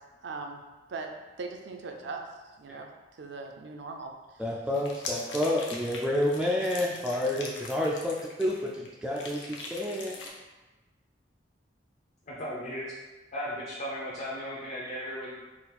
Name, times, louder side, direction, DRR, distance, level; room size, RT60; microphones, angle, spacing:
voice 1, 0.2-0.6 0.9-1.1 1.4-2.3 2.6-2.9 3.2-4.1, right 4 dB, 65° right, 4 dB, 0.5 m, -39 dB
voice 2, 4.4-10.2, left 1 dB, 5° right, -3 dB, 0.3 m, -29 dB
sound 1, 4.7-8.9 9.2-10.3, left 3 dB, 75° left, 0.7 m, -41 dB
voice 3, 12.3-12.9 13.3-15.3, equal, 40° left, -7 dB, 0.7 m, -36 dB
4.1 x 2.4 x 4.1 m, 1.2 s
head